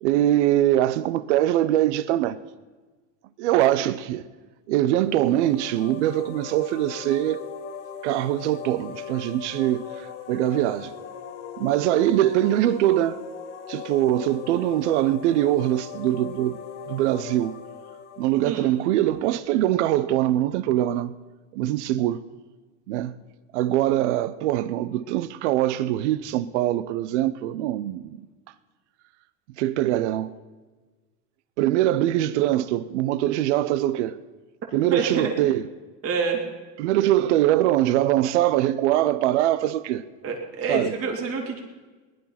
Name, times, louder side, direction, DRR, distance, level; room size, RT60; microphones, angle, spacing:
voice 1, 0.0-2.4 3.4-4.3 4.7-7.4 8.0-10.9 11.6-13.2 13.7-16.6 16.9-17.5 18.2-21.1 21.5-22.2 22.9-23.1 23.5-28.2 29.6-30.3 31.6-34.2 34.7-35.6 36.8-40.0 40.7-40.9, right 13 dB, 85° right, 0.7 m, -23 dB
sound 1, 4.9-19.6, left 7 dB, 90° left, 1.6 m, -40 dB
voice 2, 34.9-35.3 36.0-36.5 40.2-41.6, right 4 dB, 40° right, 3.2 m, -27 dB
20.0 x 11.0 x 5.8 m
supercardioid pair, 115°, 34 cm